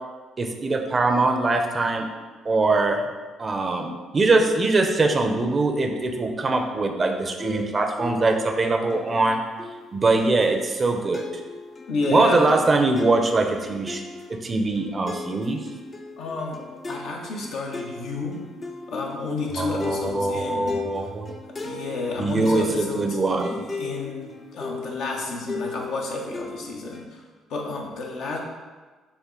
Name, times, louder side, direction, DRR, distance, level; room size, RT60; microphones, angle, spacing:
voice 1, 0.4-2.1 2.4-3.0 3.4-9.4 9.9-11.2 12.1-14.0 14.3-15.6 19.6-21.4 22.2-23.6, right 3 dB, 35° right, 4 dB, 0.5 m, -22 dB
sound 1, 7.4-27.0, left 3 dB, 35° left, 0.5 m, -37 dB
voice 2, 11.9-12.6 16.2-18.4 18.9-21.1 21.6-23.2 23.4-27.2 27.5-28.4, left 3 dB, 70° left, -1 dB, 0.8 m, -31 dB
5.6 x 2.1 x 3.7 m, 1.3 s
supercardioid pair, 60°, 0 cm